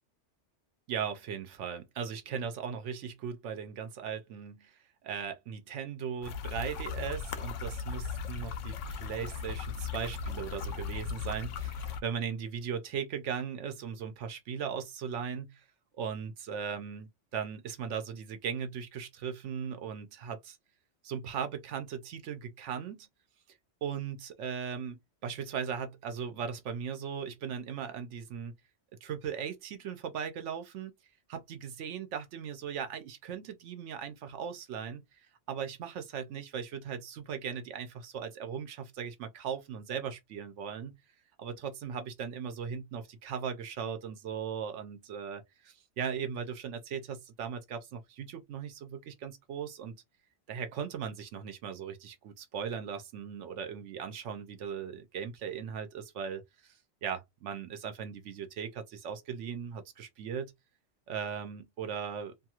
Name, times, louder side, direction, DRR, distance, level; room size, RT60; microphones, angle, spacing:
voice 1, 0.9-4.7 5.0-15.6 16.0-20.6 21.0-23.1 23.8-28.5 29.0-30.9 31.3-40.9 41.4-49.9 50.5-56.7 57.0-60.5 61.1-62.3, right 7 dB, 85° right, 1.0 m, -38 dB
sound 1, 6.2-12.0, left 5 dB, 90° left, 0.9 m, -37 dB
2.6 x 2.3 x 2.8 m
omnidirectional pair, 1.2 m